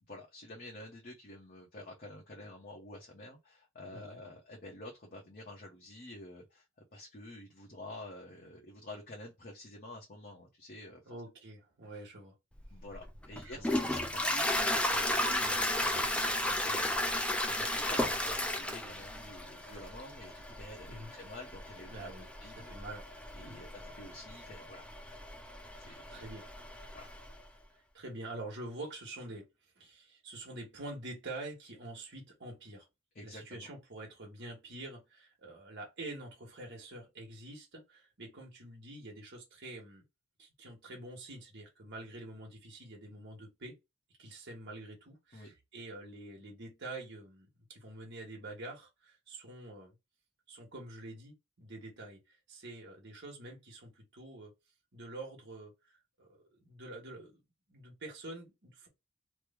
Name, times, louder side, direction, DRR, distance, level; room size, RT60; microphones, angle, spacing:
voice 1, 0.1-6.7 6.9-11.2 12.7-22.1 22.4-22.7 23.3-24.9 25.8-26.2 26.9-27.1 33.1-33.7 45.3-45.5, left 1 dB, 40° left, 0.9 m, -49 dB
voice 2, 11.1-12.3 13.3-13.8 20.9-21.1 21.9-22.3 22.6-23.1 23.4-23.6 25.9-26.5 27.7-29.5 29.8-32.9 33.2-40.0 40.4-43.8 44.2-49.9 50.5-54.5 54.9-57.4 57.7-58.9, right 2 dB, 55° right, 1.2 m, -46 dB
Toilet flush, 12.6-27.3, left 1 dB, 5° left, 0.4 m, -34 dB
3.1 x 2.2 x 3.5 m
head